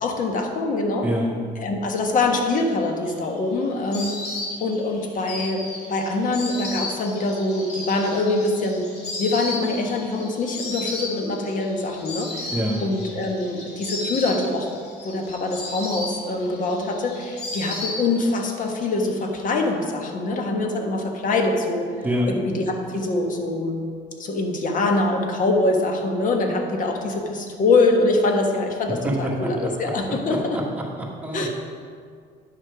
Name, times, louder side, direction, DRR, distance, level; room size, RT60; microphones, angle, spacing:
voice 1, 0.0-1.1 1.6-4.2 4.6-8.9 9.2-12.5 12.8-14.7 15.0-21.9 22.3-23.8 24.2-30.6 31.3-31.5, left 2 dB, 50° left, 3 dB, 1.4 m, -24 dB
Insect, 2.8-18.5 18.7-19.5, left 2 dB, 80° left, 2.2 m, -34 dB
voice 2, 12.5-12.8 22.0-22.3 29.0-29.5 29.8-29.9 30.5-30.6 31.0-31.5, equal, 10° right, -3 dB, 1.9 m, -25 dB
9.9 x 6.4 x 5.0 m, 2.1 s
cardioid pair, 110°, 17 cm